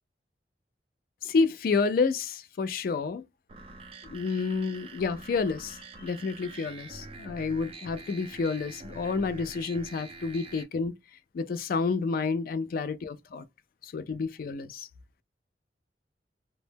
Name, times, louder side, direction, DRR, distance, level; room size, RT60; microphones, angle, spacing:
voice 1, 1.2-3.2 4.1-11.0 11.3-13.4 13.8-14.9, left 4 dB, 50° left, 0.3 m, -29 dB
sound 1, 3.5-10.6, right 3 dB, 30° right, 0.4 m, -46 dB
2.1 x 2.0 x 3.2 m
head